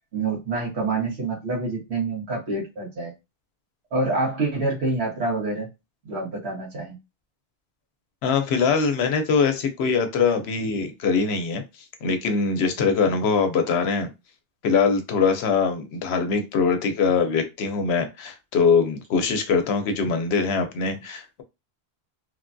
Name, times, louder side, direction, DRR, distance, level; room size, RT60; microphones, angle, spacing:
voice 1, 0.1-3.1 3.9-5.7 6.0-6.9, right 3 dB, 85° right, 1.4 m, -27 dB
voice 2, 8.2-11.6 12.0-14.1 14.6-21.4, left 5 dB, 80° left, 0.8 m, -22 dB
3.2 x 2.2 x 2.5 m
omnidirectional pair, 1.1 m